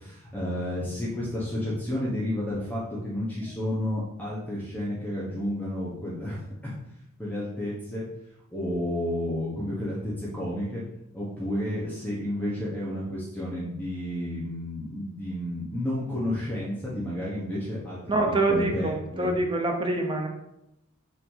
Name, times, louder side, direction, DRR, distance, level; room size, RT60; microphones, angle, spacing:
voice 1, 0.0-6.7 7.2-8.0 8.5-10.8 11.1-18.0 18.5-19.3, left 1 dB, 10° left, -7 dB, 1.1 m, -31 dB
voice 2, 18.1-20.3, right 2 dB, 25° right, 2 dB, 0.8 m, -25 dB
5.8 x 3.0 x 5.5 m, 0.85 s
head